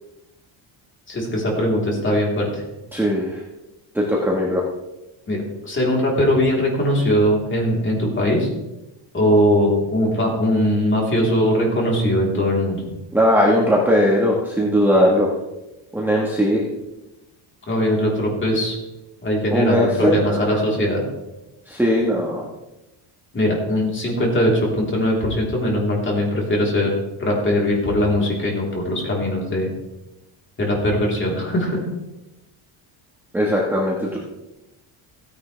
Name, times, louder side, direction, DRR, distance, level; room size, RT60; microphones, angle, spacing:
voice 1, 1.1-2.6 5.3-8.5 9.1-12.8 17.7-18.8 19.2-21.0 23.3-26.9 27.2-29.7 30.6-31.9, equal, 25° left, -2 dB, 3.7 m, -20 dB
voice 2, 2.9-3.4 3.9-4.6 13.1-15.3 15.9-16.6 19.5-20.6 21.7-22.4 33.3-34.2, equal, 5° right, -3 dB, 1.4 m, -19 dB
16.0 x 10.0 x 3.4 m, 0.97 s
cardioid pair, 145°, 47 cm